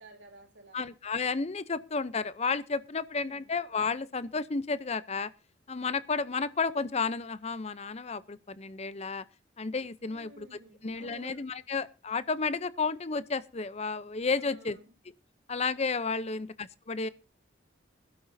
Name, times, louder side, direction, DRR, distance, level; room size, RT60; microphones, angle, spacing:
voice 1, 0.0-0.9 3.2-3.5 10.1-11.5 14.4-14.9 16.3-16.5, right 2 dB, 70° right, 3.3 m, -53 dB
voice 2, 0.7-5.3 5.7-9.2 9.6-10.5 10.8-14.8 15.5-17.1, left 4 dB, 35° left, 0.6 m, -32 dB
21.0 x 12.0 x 2.7 m
head